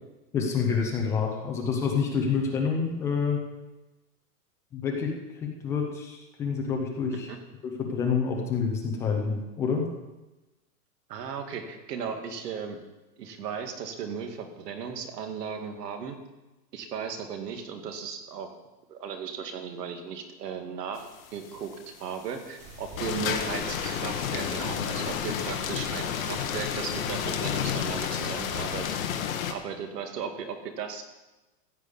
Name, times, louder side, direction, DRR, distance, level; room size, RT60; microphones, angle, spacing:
voice 1, 0.3-3.4 4.7-5.1 5.4-7.3 7.6-9.9, left 5 dB, 5° left, 0 dB, 0.4 m, -28 dB
voice 2, 11.1-12.8 13.2-16.2 16.7-18.6 18.9-21.1 21.3-21.7 22.0-29.0 29.5-31.0, right 6 dB, 70° right, 5 dB, 2.2 m, -36 dB
sound 1, 21.0-21.1 21.3-21.5 21.8-21.9 22.3-22.6 23.0-29.5, left 8 dB, 55° left, 1.4 m, -31 dB
sound 2, 22.6-29.0, right 2 dB, 30° right, 2.0 m, -44 dB
15.0 x 5.1 x 8.1 m, 1.1 s
hypercardioid pair, 155°, 49 cm